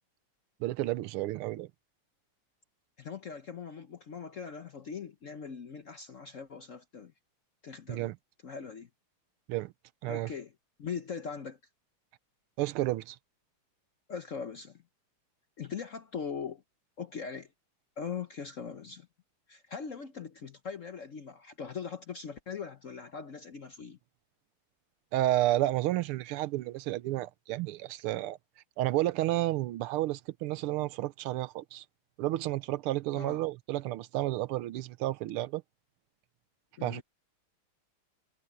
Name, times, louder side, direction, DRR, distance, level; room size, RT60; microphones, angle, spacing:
voice 1, 0.6-1.7 7.9-8.1 9.5-9.7 10.0-10.3 12.6-13.2 25.1-28.4 28.8-31.8 32.2-35.6 36.8-37.0, right 16 dB, 85° right, 1.6 m, -31 dB
voice 2, 3.0-7.1 7.6-8.1 8.4-8.9 10.1-10.5 10.8-11.6 14.1-14.8 15.6-16.6 17.0-17.5 18.0-19.1 19.5-24.0 33.1-33.4 36.8-37.0, left 6 dB, 55° left, 0.9 m, -41 dB
omnidirectional pair, 2.4 m